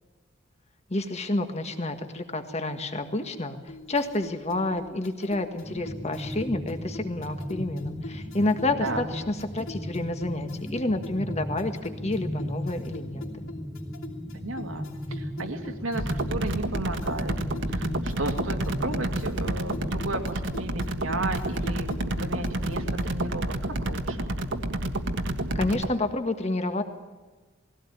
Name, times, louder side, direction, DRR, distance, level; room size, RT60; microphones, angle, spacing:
voice 1, 0.9-3.6 3.9-13.4 25.5-26.8, left 2 dB, 35° left, 7 dB, 1.7 m, -29 dB
sound 1, 3.7-23.2, left 2 dB, 85° left, 3.1 m, -44 dB
sound 2, 5.6-19.9, equal, ahead, 0.9 m, -36 dB
voice 2, 14.3-17.4 17.7-21.9 22.2-24.3, right 2 dB, 85° right, 4 dB, 2.4 m, -34 dB
sound 3, 16.0-25.9, right 1 dB, 65° right, 1.6 m, -29 dB
20.0 x 17.0 x 9.4 m, 1.3 s
head